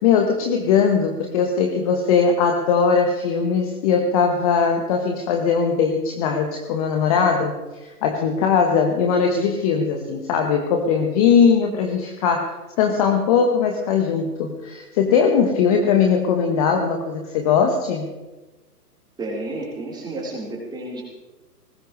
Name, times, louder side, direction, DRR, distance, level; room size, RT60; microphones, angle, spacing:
voice 1, 0.0-7.5 7.8-18.1, left 6 dB, 25° left, 3 dB, 1.2 m, -20 dB
voice 2, 19.2-21.0, right 2 dB, 10° right, -3 dB, 4.1 m, -31 dB
20.5 x 18.5 x 3.2 m, 1.1 s
figure-of-eight pair, 130°, 48 cm